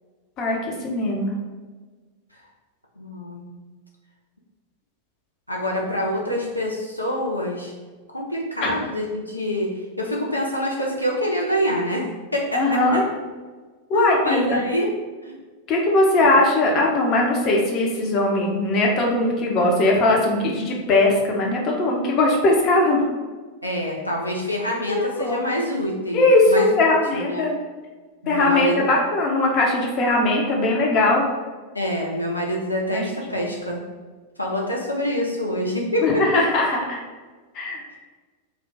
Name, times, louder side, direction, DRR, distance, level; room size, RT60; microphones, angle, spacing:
voice 1, 0.8-1.3 8.6-8.7 12.5-13.0 13.9-14.6 15.7-23.0 24.9-25.4 26.1-27.5 28.3-31.2 32.9-33.0 33.4-33.5 36.0-37.0 37.5-37.8, left 2 dB, 35° left, -1 dB, 0.6 m, -20 dB
voice 2, 3.0-3.5 5.5-7.7 8.1-9.7 10.0-12.1 12.3-13.0 13.9-14.9 15.2-15.3 16.2-16.3 23.6-27.4 28.2-28.8 31.7-33.8 34.4-36.4 37.9-38.0, equal, 85° left, -2 dB, 0.3 m, -26 dB
2.2 x 2.2 x 3.8 m, 1.4 s
figure-of-eight pair, 90°, 0 cm